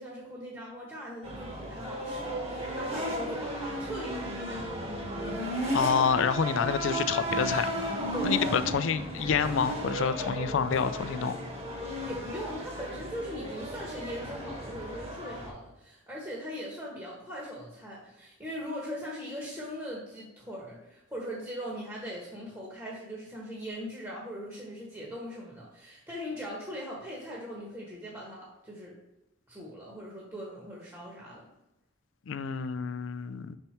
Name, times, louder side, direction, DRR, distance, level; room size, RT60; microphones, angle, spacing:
voice 1, 0.0-4.9 8.1-8.5 11.8-28.9 29.5-31.5, equal, 15° right, -5 dB, 1.2 m, -40 dB
sound 1, 1.2-15.5, equal, 35° right, 1.4 m, -34 dB
voice 2, 5.7-7.7 8.2-11.4 32.3-33.6, left 6 dB, 70° left, 12 dB, 0.4 m, -28 dB
5.5 x 4.5 x 4.4 m, 0.92 s
head